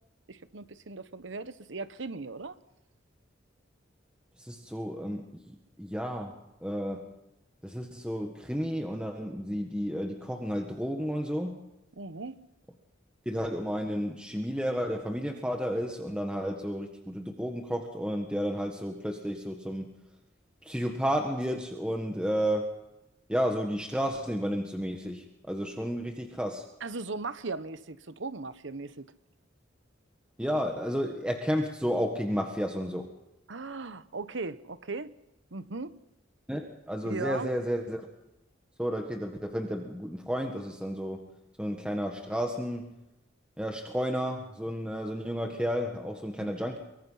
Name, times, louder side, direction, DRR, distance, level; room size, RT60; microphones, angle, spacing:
voice 1, 0.3-2.6 12.0-12.4 26.8-29.1 33.5-35.1 35.5-35.9 37.0-37.5 46.4-46.5, right 3 dB, 70° right, 1.1 m, -38 dB
voice 2, 4.4-7.1 7.6-11.6 13.2-19.9 20.6-22.7 23.3-26.6 30.4-33.1 36.5-38.1 38.8-41.2 41.6-43.0 43.6-46.8, equal, 5° right, 1.6 m, -32 dB
24.0 x 23.5 x 5.7 m
head